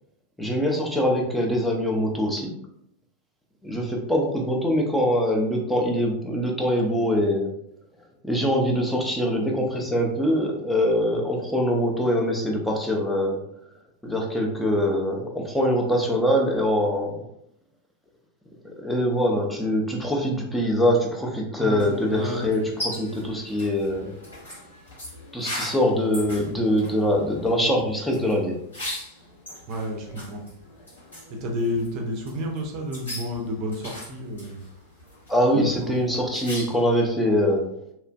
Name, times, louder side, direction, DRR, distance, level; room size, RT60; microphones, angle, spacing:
voice 1, 0.4-2.5 3.6-7.5 8.2-13.4 14.0-17.2 18.8-24.1 25.3-28.6 35.3-37.7, equal, 5° left, -1 dB, 0.6 m, -23 dB
voice 2, 21.6-22.5 29.7-30.4 31.3-34.6 35.5-35.9, left 1 dB, 40° right, 2 dB, 0.6 m, -30 dB
sound 1, 21.8-37.0, left 1 dB, 75° left, 1.5 m, -40 dB
2.9 x 2.4 x 2.2 m, 0.75 s
figure-of-eight pair, 90°, 0 cm